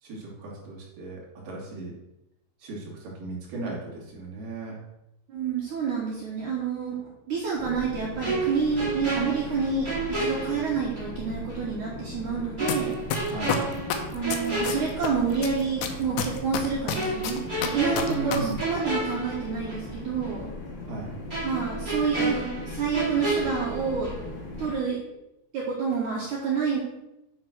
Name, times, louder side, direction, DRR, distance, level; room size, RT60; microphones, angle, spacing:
voice 1, 0.0-1.9 2.6-4.8 13.3-13.6 18.0-18.6 20.9-21.1, right 2 dB, 50° right, -4 dB, 3.4 m, -36 dB
voice 2, 5.3-13.0 14.1-20.5 21.4-24.1 24.6-25.0 25.5-26.8, right 5 dB, 75° right, -4 dB, 1.8 m, -28 dB
sound 1, 7.6-24.7, left 2 dB, 50° left, 1.5 m, -39 dB
sound 2, 8.2-11.2 11.5-11.6 12.6-15.5 15.9-16.1 16.9-19.9 20.2-20.4 21.3-24.3 24.6-24.8, right 2 dB, 20° right, 1.3 m, -32 dB
sound 3, 12.7-12.8 13.1-15.1 15.4-18.4 18.6-18.7, left 8 dB, 80° left, 2.4 m, -28 dB
10.0 x 3.7 x 6.0 m, 0.91 s
omnidirectional pair, 5.4 m